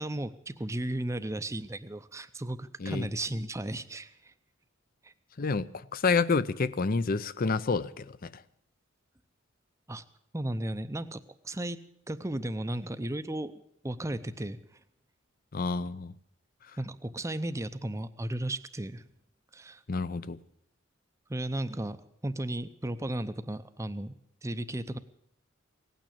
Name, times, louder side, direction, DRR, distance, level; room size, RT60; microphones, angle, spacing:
voice 1, 0.0-4.3 5.0-5.1 9.9-10.0 10.3-11.8 12.1-13.5 13.8-14.6 16.8-19.0 19.5-19.8 21.3-22.0 22.2-24.1 24.4-25.0, right 1 dB, 15° right, 12 dB, 0.6 m, -34 dB
voice 2, 5.4-8.4 15.5-16.1 19.9-20.4, left 4 dB, 45° left, 16 dB, 0.6 m, -29 dB
17.5 x 9.1 x 8.5 m, 0.75 s
head